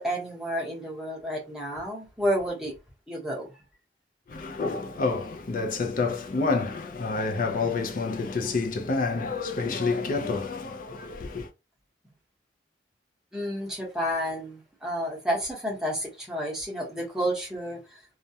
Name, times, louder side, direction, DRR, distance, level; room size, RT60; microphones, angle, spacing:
voice 1, 0.0-2.7 3.1-3.5 13.3-18.0, equal, 5° right, 0.9 m, -30 dB
voice 2, 4.3-11.5, left 4 dB, 45° left, 0.4 m, -28 dB
2.3 x 2.1 x 2.7 m
head